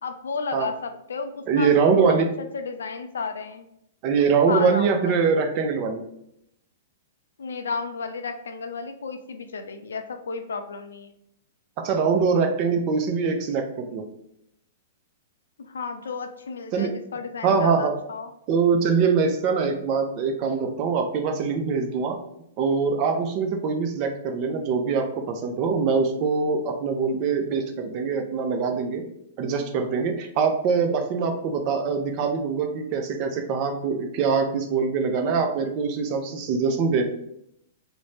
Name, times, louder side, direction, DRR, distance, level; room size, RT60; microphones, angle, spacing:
voice 1, 0.0-3.7 4.5-5.1 7.4-11.1 15.6-18.3, left 4 dB, 80° left, 6 dB, 0.4 m, -33 dB
voice 2, 1.5-2.3 4.0-6.0 11.8-14.1 16.7-16.9 17.4-18.0 18.5-22.2 22.6-29.0 29.4-37.0, right 5 dB, 40° right, 4 dB, 0.5 m, -23 dB
2.5 x 2.1 x 3.2 m, 0.76 s
hypercardioid pair, 120°, 0 cm